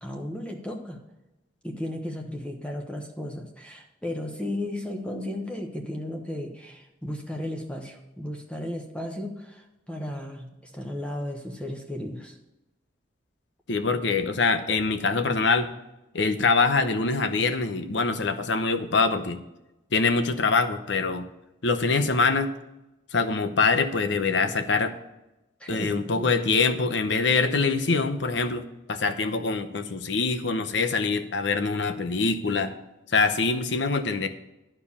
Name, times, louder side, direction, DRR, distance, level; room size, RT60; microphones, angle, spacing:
voice 1, 0.0-1.0 1.6-12.4 25.6-26.3, left 1 dB, 5° left, 2 dB, 1.0 m, -35 dB
voice 2, 13.7-15.7 16.1-19.4 19.9-21.3 21.6-22.5 23.1-24.9 25.7-32.7 33.1-34.3, left 4 dB, 65° left, 9 dB, 0.8 m, -24 dB
12.0 x 4.6 x 7.1 m, 0.96 s
head